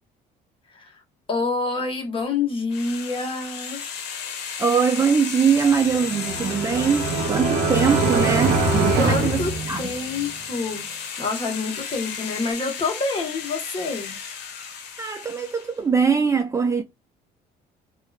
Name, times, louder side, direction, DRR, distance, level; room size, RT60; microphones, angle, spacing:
voice 1, 1.3-3.8 9.0-10.9 11.2-14.2, left 3 dB, 30° left, 1.2 m, -27 dB
sound 1, 2.7-15.8, left 7 dB, 80° left, 0.8 m, -34 dB
voice 2, 4.6-9.9 15.0-16.8, right 6 dB, 20° right, 0.3 m, -22 dB
sound 2, 5.7-10.3, right 3 dB, 65° right, 0.7 m, -23 dB
2.8 x 2.4 x 2.3 m
cardioid pair, 110°, 17 cm